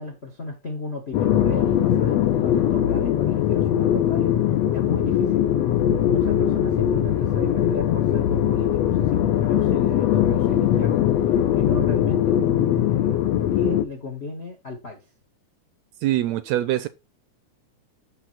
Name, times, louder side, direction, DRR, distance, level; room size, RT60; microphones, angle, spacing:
voice 1, 0.0-4.3 4.7-5.5 6.1-11.0 11.5-13.2 13.5-15.0, left 3 dB, 50° left, 0.7 m, -34 dB
sound 1, 1.1-13.9, left 10 dB, 70° left, 1.9 m, -21 dB
voice 2, 16.0-16.9, right 14 dB, 80° right, 1.7 m, -23 dB
6.6 x 6.4 x 4.2 m
omnidirectional pair, 3.5 m